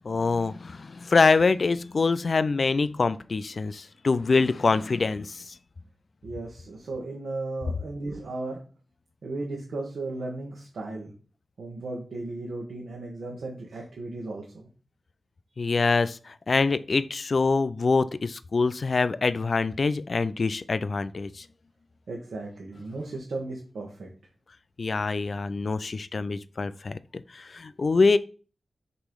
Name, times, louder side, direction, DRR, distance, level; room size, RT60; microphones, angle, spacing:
voice 1, 0.0-5.6 15.6-21.4 24.8-28.2, left 4 dB, 50° left, 0.3 m, -25 dB
voice 2, 6.2-8.6 9.2-11.1 11.6-14.6 22.1-24.1, right 2 dB, 90° right, 1.4 m, -35 dB
6.7 x 3.1 x 5.3 m
wide cardioid pair, 140°, 0 cm